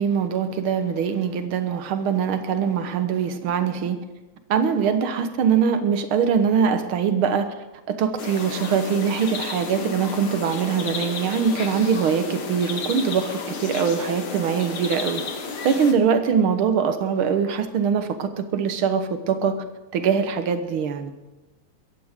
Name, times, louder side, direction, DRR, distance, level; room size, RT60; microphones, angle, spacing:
voice 1, 0.0-4.0 4.5-7.5 7.9-15.2 15.6-19.6 19.9-21.1, right 7 dB, 60° right, 9 dB, 1.5 m, -22 dB
sound 1, 8.2-15.9, left 5 dB, 50° left, 2.0 m, -32 dB
21.5 x 15.5 x 3.7 m, 1.1 s
omnidirectional pair, 3.4 m